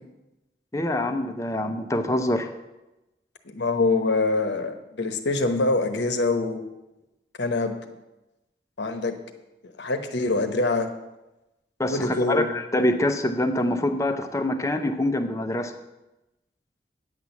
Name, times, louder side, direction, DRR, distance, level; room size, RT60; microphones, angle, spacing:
voice 1, 0.7-2.5 11.8-15.7, left 1 dB, 15° left, 7 dB, 0.6 m, -25 dB
voice 2, 3.4-6.7 7.4-7.7 8.8-9.2 9.6-10.9 11.9-12.5, left 3 dB, 85° left, 7 dB, 1.0 m, -24 dB
9.4 x 6.1 x 7.0 m, 0.99 s
head